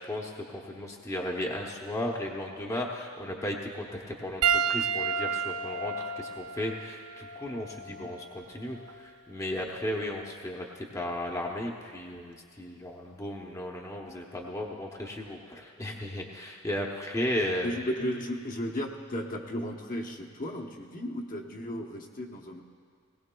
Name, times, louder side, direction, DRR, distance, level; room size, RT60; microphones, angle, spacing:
voice 1, 0.0-17.8, left 1 dB, 15° left, -1 dB, 0.8 m, -35 dB
Piano, 4.4-9.1 10.0-10.2 12.1-12.2, right 6 dB, 85° right, 0.4 m, -31 dB
voice 2, 17.6-22.6, equal, 40° left, 0 dB, 0.9 m, -35 dB
19.5 x 17.5 x 2.3 m, 2.1 s
head